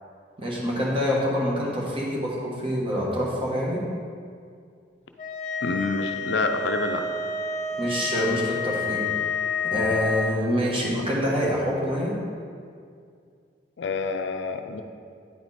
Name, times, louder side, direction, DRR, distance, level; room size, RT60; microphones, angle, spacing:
voice 1, 0.4-3.9 7.7-9.0 9.6-12.2, equal, 30° right, -4 dB, 1.3 m, -26 dB
sound 1, 5.2-10.3, left 4 dB, 40° left, 0.7 m, -29 dB
voice 2, 5.6-7.1 13.8-14.8, left 4 dB, 75° left, 6 dB, 0.4 m, -27 dB
9.5 x 4.6 x 4.1 m, 2.2 s
head